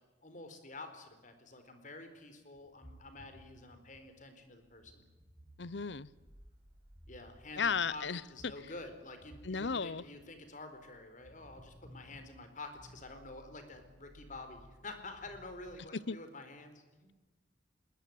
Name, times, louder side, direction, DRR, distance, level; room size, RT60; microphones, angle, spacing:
voice 1, 0.2-5.0 7.1-8.1 8.3-17.1, left 2 dB, 45° left, 8 dB, 4.3 m, -49 dB
sound 1, 2.5-15.8, equal, 35° right, 5.8 m, -59 dB
voice 2, 5.6-6.1 7.6-8.5 9.4-10.0 15.9-16.2, left 5 dB, 80° left, 20 dB, 0.8 m, -35 dB
21.0 x 20.5 x 9.4 m, 1.2 s
head